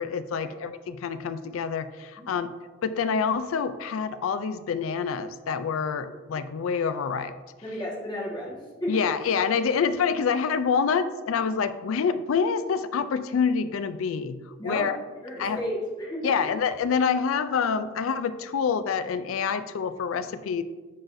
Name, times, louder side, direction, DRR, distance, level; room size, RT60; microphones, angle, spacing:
voice 1, 0.0-2.5 2.8-7.4 8.9-14.4 14.6-15.0 15.4-15.6 16.2-20.6, left 6 dB, 90° left, 12 dB, 0.4 m, -27 dB
voice 2, 7.6-9.0 14.6-14.9 15.2-16.3, equal, 20° left, -5 dB, 1.5 m, -33 dB
10.0 x 3.9 x 2.6 m, 1.3 s
head